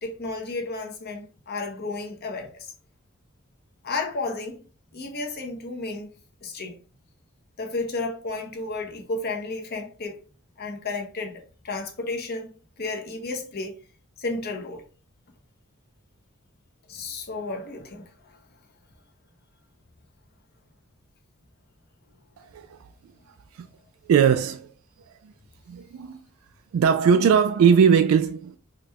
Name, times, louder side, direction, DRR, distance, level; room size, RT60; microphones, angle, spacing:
voice 1, 0.0-2.7 3.8-4.6 4.9-6.1 6.4-6.7 7.6-10.2 10.6-12.5 12.8-13.8 14.2-14.8 16.9-18.0, left 3 dB, 50° left, 0.9 m, -32 dB
voice 2, 22.4-22.8 23.6-23.7 24.1-24.7 25.7-26.2 26.7-28.6, right 7 dB, 85° right, 0.3 m, -19 dB
5.0 x 2.3 x 2.8 m
head